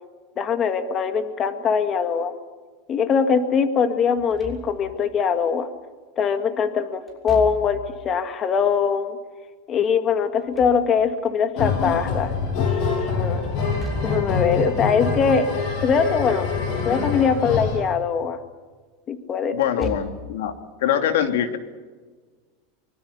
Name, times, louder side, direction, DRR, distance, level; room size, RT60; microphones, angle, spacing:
voice 1, 0.4-2.3 2.9-5.7 6.2-9.2 9.7-13.4 14.0-15.5 15.8-16.5 16.8-18.4 19.1-19.9, left 6 dB, 30° left, 8 dB, 1.9 m, -22 dB
Slam / Thump thud, 4.2-5.1 7.1-8.0 10.2-11.3 13.6-14.4 16.5-17.0 17.4-17.5 19.5-20.3, right 2 dB, 15° left, 6.6 m, -36 dB
sound 1, 11.6-17.8, left 5 dB, 50° left, 7.4 m, -25 dB
voice 2, 19.5-20.5 20.8-21.6, left 10 dB, 80° left, 6 dB, 2.9 m, -23 dB
24.5 x 24.5 x 7.0 m, 1.4 s
supercardioid pair, 140°, 0 cm